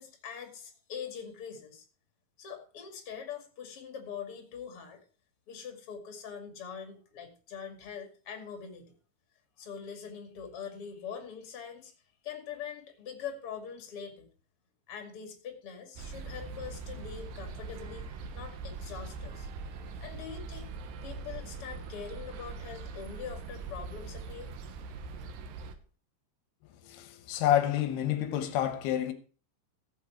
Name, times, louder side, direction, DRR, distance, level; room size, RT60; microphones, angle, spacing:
voice 1, 0.0-1.9 2.4-5.0 5.5-9.0 9.6-11.9 12.2-14.3 14.9-18.1 18.3-19.5 20.0-20.7 21.0-24.5, left 7 dB, 40° left, 2.4 m, -43 dB
sound 1, 16.0-25.7, right 4 dB, 75° right, 3.2 m, -42 dB
voice 2, 26.8-29.1, left 11 dB, 70° left, 2.7 m, -28 dB
14.0 x 8.3 x 4.6 m
omnidirectional pair, 5.3 m